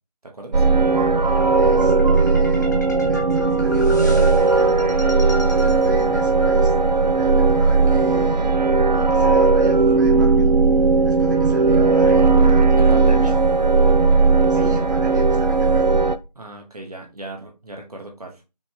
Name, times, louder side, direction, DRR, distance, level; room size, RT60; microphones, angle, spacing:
voice 1, 0.2-0.7 12.8-13.4 16.3-18.4, right 2 dB, 65° right, 2 dB, 1.2 m, -36 dB
sound 1, 0.5-16.2, right 4 dB, 85° right, 0.5 m, -17 dB
sound 2, 0.9-7.0, equal, 25° left, 0.8 m, -34 dB
voice 2, 1.5-4.8 5.5-6.8 7.1-8.5 8.9-10.6 10.8-13.4 14.5-15.9, right 2 dB, 25° right, -2 dB, 1.4 m, -36 dB
5.8 x 3.7 x 2.4 m, 0.28 s
figure-of-eight pair, 160°, 21 cm